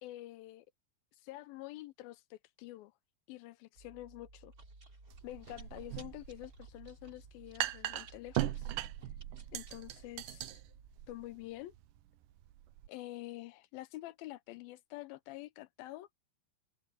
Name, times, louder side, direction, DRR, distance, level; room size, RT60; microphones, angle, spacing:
voice 1, 0.0-0.7 1.2-2.9 3.3-4.5 5.2-8.7 9.5-10.6 11.1-11.7 12.9-16.2, left 17 dB, 80° left, 2.1 m, -47 dB
Chewing mastication, 3.7-11.0, right 2 dB, 20° right, 3.8 m, -57 dB
sound 1, 5.1-12.9, right 14 dB, 85° right, 1.9 m, -40 dB
open air
omnidirectional pair, 5.0 m